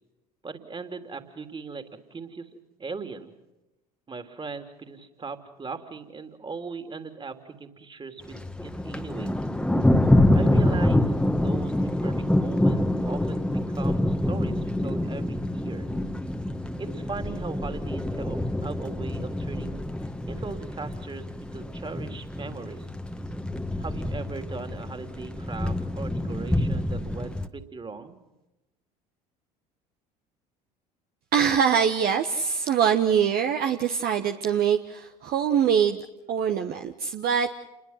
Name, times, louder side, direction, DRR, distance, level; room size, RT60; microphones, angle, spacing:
voice 1, 0.4-1.8 2.1-2.5 2.8-3.3 4.1-9.4 10.3-11.0 11.4-15.9 16.8-19.8 20.3-22.9 23.8-28.2, right 4 dB, 25° right, 8 dB, 3.2 m, -39 dB
Thunder, 8.3-27.5, left 1 dB, 5° left, 1.6 m, -26 dB
voice 2, 31.3-36.0 36.3-37.5, right 8 dB, 50° right, 6 dB, 1.4 m, -23 dB
29.0 x 22.0 x 5.9 m, 0.98 s
figure-of-eight pair, 65°, 20 cm